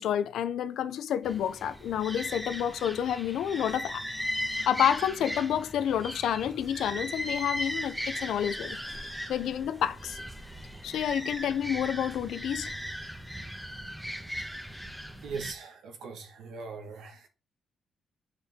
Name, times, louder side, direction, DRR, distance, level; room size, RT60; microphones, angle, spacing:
voice 1, 0.0-4.0 4.7-8.8 9.3-10.2 10.8-12.7, left 9 dB, 80° left, 0.6 m, -29 dB
sound 1, 1.2-15.5, equal, 10° right, 1.5 m, -37 dB
voice 2, 15.2-17.3, right 5 dB, 80° right, 1.6 m, -40 dB
6.9 x 5.3 x 3.6 m
cardioid pair, 110°, 0 cm